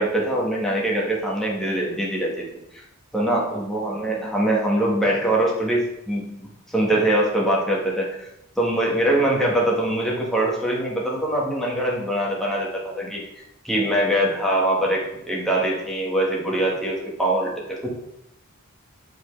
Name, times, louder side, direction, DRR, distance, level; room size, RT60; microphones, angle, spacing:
voice 1, 0.0-2.8 3.1-8.3 8.6-13.2 13.6-17.9, right 1 dB, ahead, -4 dB, 1.3 m, -23 dB
8.1 x 4.3 x 3.2 m, 0.83 s
head